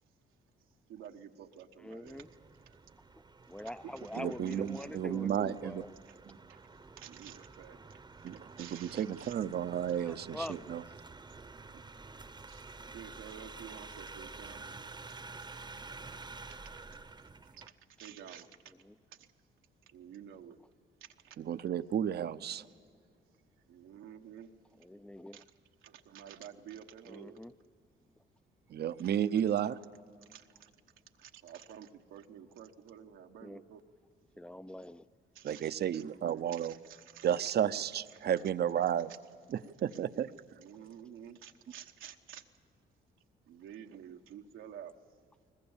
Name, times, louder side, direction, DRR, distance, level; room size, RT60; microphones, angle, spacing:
voice 1, 0.9-2.3 2.7-2.8 3.6-4.9 5.3-5.4 6.0-6.2 6.5-6.6 7.0-7.8 8.6-9.4 9.9-10.0 12.5-14.6 15.1-15.4 17.5-18.5 19.2-19.3 19.9-20.6 21.2-21.4 23.7-24.5 25.3-25.4 25.8-27.4 29.0-29.1 30.3-30.7 31.2-33.8 35.3-35.8 36.5-37.5 38.1-38.3 39.9-40.0 40.6-42.4 43.5-44.9, right 9 dB, 90° right, 4 dB, 1.2 m, -51 dB
voice 2, 1.8-2.3 3.5-5.9 10.0-10.9 18.8-18.9 24.8-25.4 27.1-27.5 33.4-33.6 34.4-35.1, left 1 dB, 5° left, 16 dB, 0.5 m, -44 dB
sound 1, 2.1-17.7, right 3 dB, 20° right, 0.8 m, -50 dB
voice 3, 4.1-5.8 6.3-6.4 8.2-10.8 21.4-22.6 28.7-29.8 35.4-36.7 37.2-39.1 39.8-40.3, right 9 dB, 55° right, 14 dB, 0.7 m, -32 dB
22.0 x 20.0 x 7.2 m, 2.1 s
cardioid pair, 90°, 20 cm